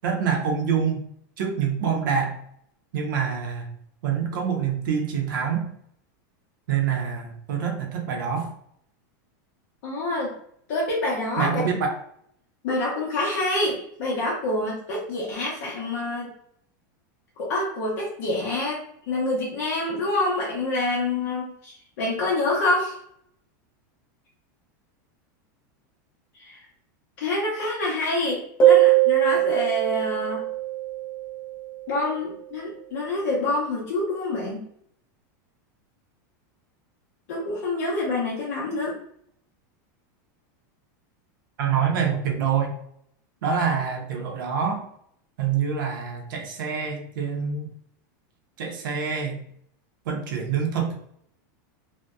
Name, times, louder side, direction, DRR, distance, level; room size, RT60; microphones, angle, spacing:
voice 1, 0.0-1.0 1.4-2.4 2.9-3.7 4.0-5.7 6.7-8.5 11.4-12.0 41.6-42.7 43.4-44.9 45.4-47.7 48.6-49.4 50.1-51.0, right 7 dB, 85° right, 3 dB, 0.6 m, -26 dB
voice 2, 9.8-10.3 10.7-11.7 12.6-16.3 17.4-18.8 19.1-23.0 26.3-26.6 27.2-30.5 31.9-34.6 37.3-38.9, left 2 dB, 55° left, -5 dB, 0.7 m, -27 dB
sound 1, 28.6-31.9, right 13 dB, 15° left, 0.5 m, -21 dB
2.6 x 2.1 x 2.3 m, 0.69 s
supercardioid pair, 170°, 11 cm